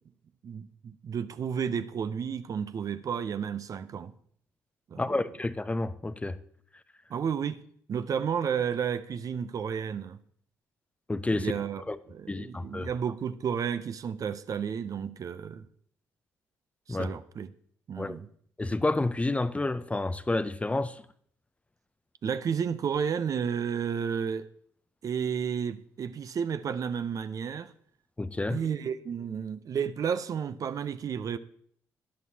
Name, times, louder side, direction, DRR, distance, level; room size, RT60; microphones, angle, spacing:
voice 1, 0.4-4.1 4.9-5.1 7.1-7.6 7.9-10.2 11.3-11.8 12.1-15.7 16.9-17.5 17.9-18.3 22.2-24.5 25.0-27.7 28.5-31.4, right 7 dB, 45° right, 0.6 m, -32 dB
voice 2, 5.0-6.4 11.1-12.0 12.3-12.9 16.9-17.1 18.0-18.2 18.6-21.0 28.2-28.6, left 2 dB, 15° left, 0.5 m, -30 dB
12.5 x 10.5 x 2.8 m
hypercardioid pair, 45°, 8 cm